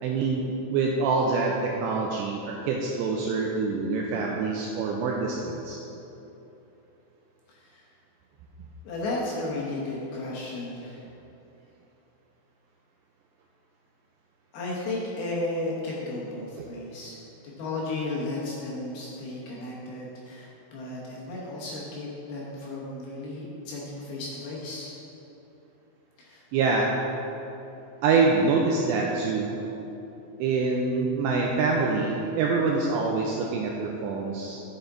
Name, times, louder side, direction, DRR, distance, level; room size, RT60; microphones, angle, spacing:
voice 1, 0.0-5.8 16.6-16.7 26.5-26.9 28.0-29.6 30.4-34.6, right 4 dB, 90° right, -1 dB, 2.5 m, -25 dB
voice 2, 8.8-11.0 14.5-17.2 17.6-25.0 26.2-26.4, left 2 dB, 70° left, -5 dB, 2.4 m, -34 dB
10.0 x 7.0 x 3.8 m, 3.0 s
omnidirectional pair, 5.6 m